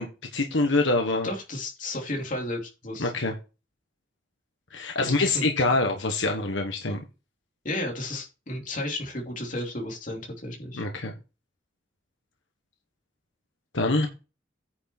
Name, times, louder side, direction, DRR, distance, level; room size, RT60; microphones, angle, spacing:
voice 1, 0.0-1.3 3.0-3.3 4.7-7.0 10.7-11.1 13.7-14.1, left 2 dB, 75° left, 1.4 m, -25 dB
voice 2, 1.2-3.1 5.0-5.5 7.6-10.8, left 1 dB, 45° left, 2.9 m, -33 dB
9.5 x 6.1 x 4.3 m
head